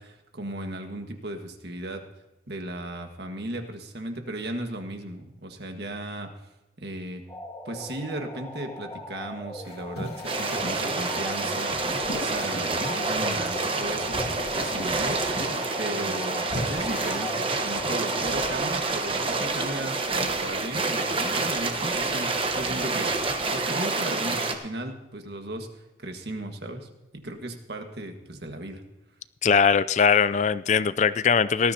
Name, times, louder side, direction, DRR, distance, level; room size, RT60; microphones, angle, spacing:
voice 1, 0.0-2.1 2.5-6.3 6.8-7.2 7.6-15.2 15.8-23.2 23.5-28.8, right 1 dB, 65° right, 5 dB, 1.6 m, -36 dB
sound 1, 7.3-18.7, left 1 dB, 20° left, 1.6 m, -40 dB
sound 2, 9.6-13.8 14.1-15.8 16.5-17.9, left 1 dB, 60° left, 2.6 m, -38 dB
sound 3, 10.2-24.5, right 3 dB, 30° right, 1.1 m, -28 dB
voice 2, 29.4-31.7, left 6 dB, 40° left, 16 dB, 0.4 m, -21 dB
19.0 x 13.5 x 2.8 m, 0.98 s
head